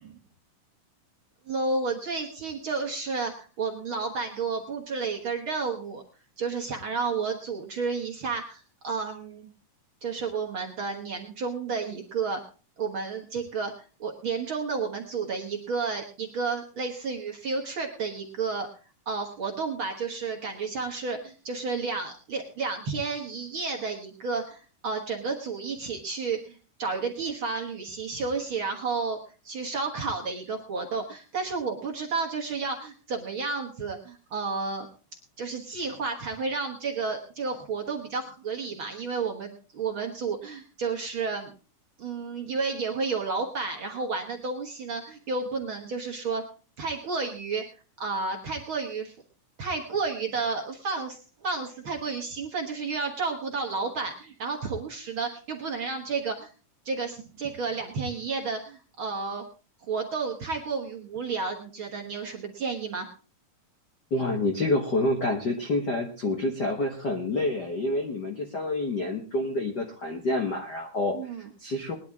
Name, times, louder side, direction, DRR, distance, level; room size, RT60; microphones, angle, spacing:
voice 1, 1.5-6.0 6.4-9.5 10.0-12.4 12.8-13.7 14.0-18.7 19.1-29.2 29.4-34.9 35.4-41.5 42.0-46.4 46.8-47.6 48.0-49.2 49.6-56.5 56.9-59.5 59.8-63.1 71.1-71.4, right 4 dB, 50° right, 2 dB, 1.7 m, -31 dB
voice 2, 64.1-71.9, left 2 dB, 50° left, 2 dB, 1.3 m, -28 dB
20.0 x 11.0 x 3.6 m, 0.36 s
omnidirectional pair, 3.8 m